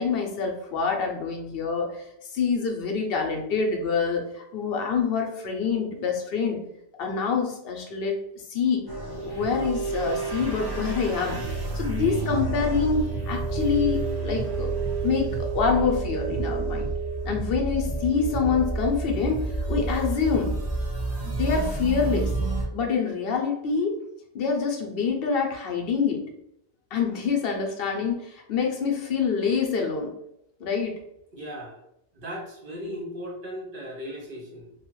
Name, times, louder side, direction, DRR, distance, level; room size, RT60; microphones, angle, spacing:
voice 1, 0.0-6.6 7.0-8.2 8.5-8.9 9.1-11.4 11.7-14.7 15.0-16.9 17.3-19.4 19.7-20.5 21.3-22.3 22.7-24.0 24.3-26.2 26.9-30.1 30.6-30.9, left 5 dB, 70° left, 2 dB, 0.7 m, -26 dB
sound 1, 8.9-22.6, right 3 dB, 30° right, 0.5 m, -29 dB
voice 2, 31.3-31.8 32.1-34.7, equal, 55° right, -2 dB, 0.9 m, -37 dB
2.7 x 2.3 x 3.0 m, 0.77 s
omnidirectional pair, 1.1 m